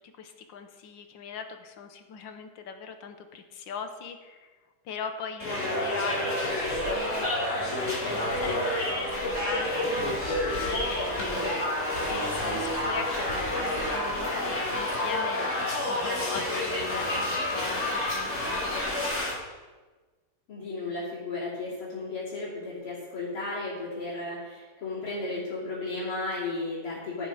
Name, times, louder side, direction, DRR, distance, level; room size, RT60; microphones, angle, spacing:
voice 1, 0.2-4.5 4.8-11.7 12.1-18.8, left 6 dB, 65° left, 7 dB, 1.6 m, -40 dB
sound 1, 5.4-19.3, left 1 dB, 35° left, 2.8 m, -29 dB
voice 2, 20.5-27.3, left 2 dB, 85° left, -11 dB, 4.0 m, -34 dB
13.0 x 7.5 x 5.0 m, 1.3 s
omnidirectional pair, 2.3 m